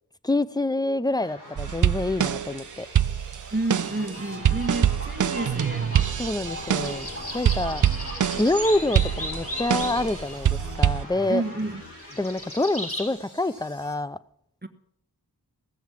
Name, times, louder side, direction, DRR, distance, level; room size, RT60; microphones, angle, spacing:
voice 1, 0.2-2.9 6.2-7.1 7.3-7.8 8.4-11.4 12.2-14.2, left 2 dB, 10° left, 0.6 m, -26 dB
sound 1, 1.2-14.0, left 1 dB, 60° left, 7.5 m, -48 dB
sound 2, 1.6-2.6 2.9-7.1 7.4-8.6 8.9-10.1 10.4-11.0, right 9 dB, 50° right, 0.4 m, -24 dB
sound 3, 3.4-13.1, left 1 dB, 35° left, 6.2 m, -36 dB
voice 2, 3.5-5.9 11.3-11.8 14.6-14.7, right 2 dB, 25° right, 1.5 m, -30 dB
16.5 x 7.1 x 7.5 m
wide cardioid pair, 45°, 41 cm